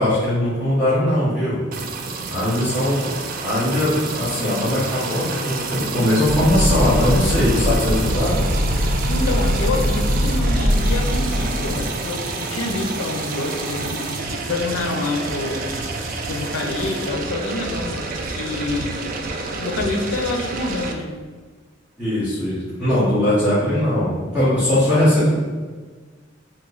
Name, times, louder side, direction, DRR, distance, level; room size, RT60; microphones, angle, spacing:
voice 1, 0.0-1.6 2.3-3.1 3.4-8.4 22.0-25.3, left 1 dB, 5° right, -13 dB, 1.0 m, -20 dB
sound 1, 1.7-20.9, right 3 dB, 45° right, 0.3 m, -29 dB
sound 2, 6.2-11.9, equal, 75° right, 1.0 m, -21 dB
voice 2, 9.1-15.6 16.3-19.0 19.6-21.1, left 2 dB, 90° left, 3 dB, 0.5 m, -27 dB
3.0 x 2.1 x 3.7 m, 1.5 s
head